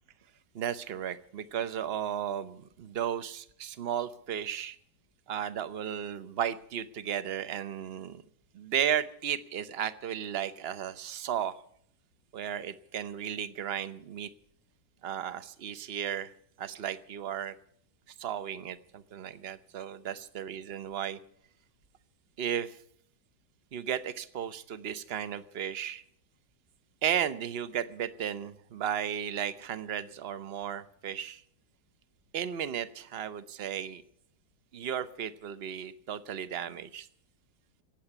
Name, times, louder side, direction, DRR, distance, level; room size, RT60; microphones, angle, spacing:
voice 1, 0.5-4.8 5.3-8.2 8.5-11.6 12.3-14.3 15.0-16.3 16.6-17.5 18.2-21.2 22.4-22.8 23.7-26.0 27.0-31.4 32.3-34.0 34.7-37.1, right 9 dB, 45° right, 13 dB, 0.8 m, -34 dB
18.0 x 7.9 x 10.0 m, 0.66 s
omnidirectional pair, 2.0 m